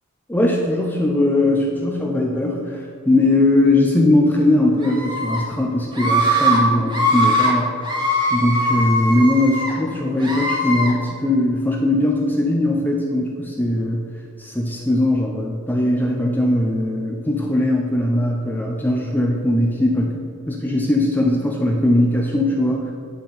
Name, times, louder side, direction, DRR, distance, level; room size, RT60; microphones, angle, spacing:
voice 1, 0.3-7.7 8.3-14.0 14.4-22.9, left 1 dB, 10° left, -1 dB, 0.6 m, -19 dB
Screaming, 4.8-5.4 5.9-6.6 6.9-7.5 7.8-9.7 10.2-10.9, equal, 20° right, 1.5 m, -21 dB
10.0 x 3.8 x 6.7 m, 2.3 s
head